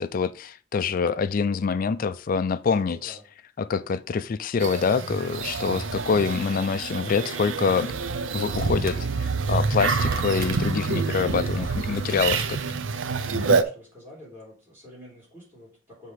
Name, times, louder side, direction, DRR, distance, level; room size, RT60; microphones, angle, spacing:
voice 1, 0.0-3.2 3.6-7.9 8.3-12.4 13.5-13.6, left 5 dB, 45° left, 0.4 m, -25 dB
voice 2, 2.8-3.3 5.7-6.2 11.4-12.6 13.1-16.1, left 1 dB, 10° right, 4.0 m, -48 dB
sound 1, 4.6-13.6, right 4 dB, 80° right, 0.6 m, -27 dB
sound 2, 7.6-13.1, right 3 dB, 50° right, 1.2 m, -45 dB
7.6 x 3.6 x 4.9 m
head